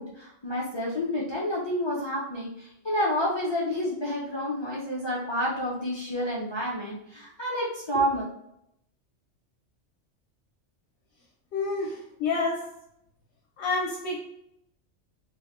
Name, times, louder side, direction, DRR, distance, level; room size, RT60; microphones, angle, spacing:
voice 1, 0.0-8.3, equal, 40° left, -6 dB, 0.4 m, -29 dB
voice 2, 11.5-12.7 13.6-14.2, left 3 dB, 70° left, -1 dB, 0.8 m, -28 dB
3.1 x 2.1 x 2.9 m, 0.80 s
omnidirectional pair, 1.3 m